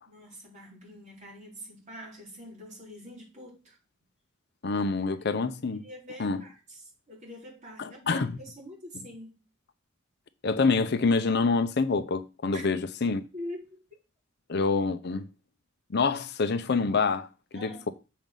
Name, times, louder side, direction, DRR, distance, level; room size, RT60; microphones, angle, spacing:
voice 1, 0.1-3.8 5.7-6.8 7.1-9.4 12.5-12.6 13.3-13.8 17.5-17.9, equal, 35° right, 4.5 m, -44 dB
voice 2, 4.6-5.8 6.2-6.4 7.8-8.3 10.4-13.2 14.5-15.2 15.9-17.9, left 4 dB, 55° left, 0.6 m, -26 dB
7.6 x 5.1 x 5.4 m
head